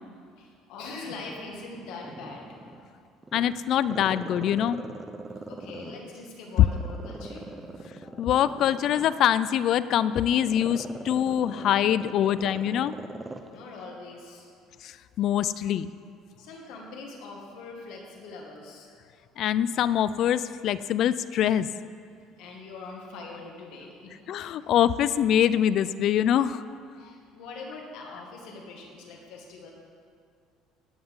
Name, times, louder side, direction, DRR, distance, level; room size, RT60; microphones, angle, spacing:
voice 1, 0.4-2.4 5.5-7.5 13.4-14.5 16.4-18.9 22.4-24.1 27.0-29.7, left 3 dB, 75° left, 0 dB, 2.0 m, -42 dB
Growling, 1.1-2.8 3.2-6.2 6.7-13.5 13.8-13.9, right 2 dB, 15° right, 0.8 m, -40 dB
voice 2, 3.3-4.8 8.2-12.9 14.8-15.9 19.4-21.7 24.3-26.6, left 10 dB, 55° left, 16 dB, 0.4 m, -24 dB
16.5 x 9.5 x 3.7 m, 2.3 s
cardioid pair, 115°, 0 cm